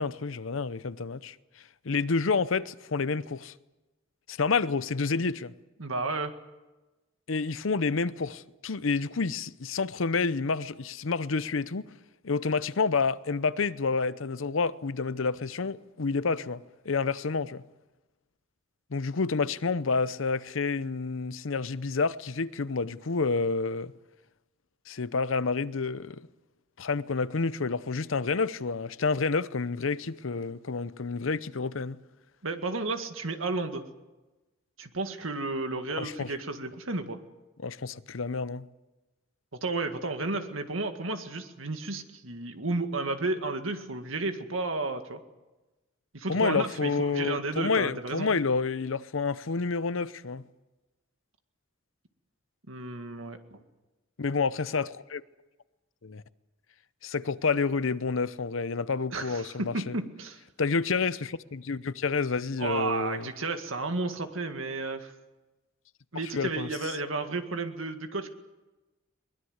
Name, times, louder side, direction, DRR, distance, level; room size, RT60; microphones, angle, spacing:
voice 1, 0.0-1.4 1.8-3.5 4.3-5.5 7.3-11.8 12.2-17.6 18.9-23.9 24.9-26.3 26.8-32.0 36.0-36.3 37.6-38.7 46.3-50.4 54.2-55.2 56.0-56.2 57.0-60.0 60.6-63.3 66.3-66.7, left 4 dB, 70° left, 0.7 m, -29 dB
voice 2, 5.8-6.3 32.4-33.9 34.8-37.2 39.6-45.2 46.1-48.4 52.7-53.6 59.1-60.4 62.6-65.1 66.1-68.3, right 3 dB, 75° right, 2.0 m, -32 dB
22.5 x 21.0 x 8.0 m
head